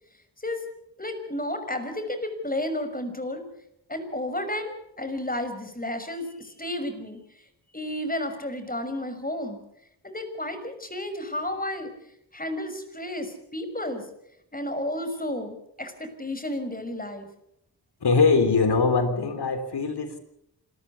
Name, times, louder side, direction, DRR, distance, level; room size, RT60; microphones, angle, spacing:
voice 1, 1.0-3.4 3.9-7.2 7.7-9.6 10.0-11.9 12.3-14.0 14.5-17.3, left 1 dB, 20° left, 8 dB, 5.8 m, -32 dB
voice 2, 18.0-20.2, left 4 dB, 60° left, 10 dB, 3.8 m, -22 dB
26.5 x 14.0 x 8.4 m, 0.80 s
supercardioid pair, 45°, 43 cm